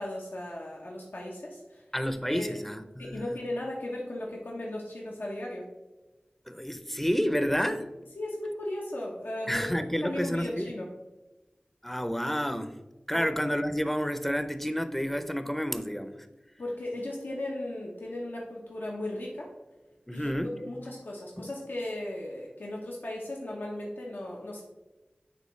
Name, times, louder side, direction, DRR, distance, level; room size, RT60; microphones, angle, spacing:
voice 1, 0.0-1.8 2.3-2.5 3.0-5.6 8.2-10.9 13.1-13.2 16.6-19.5 20.1-24.6, left 1 dB, 85° left, -3 dB, 0.9 m, -36 dB
voice 2, 1.9-3.3 6.5-7.8 9.5-10.7 11.8-12.7 13.1-16.3 20.1-20.6 21.4-21.5, equal, 5° left, 10 dB, 0.5 m, -30 dB
9.5 x 3.5 x 3.1 m, 1.1 s
wide cardioid pair, 45°, 3 cm